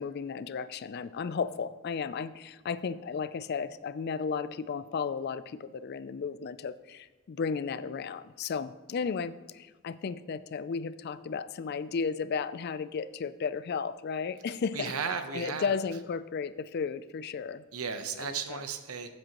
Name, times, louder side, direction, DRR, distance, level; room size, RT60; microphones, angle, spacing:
voice 1, 0.0-14.9 15.3-17.6 18.2-18.6, left 5 dB, 45° left, 15 dB, 0.3 m, -34 dB
voice 2, 14.7-15.8 17.7-19.1, right 6 dB, 85° right, 8 dB, 0.9 m, -35 dB
15.0 x 7.6 x 3.0 m, 1.2 s
head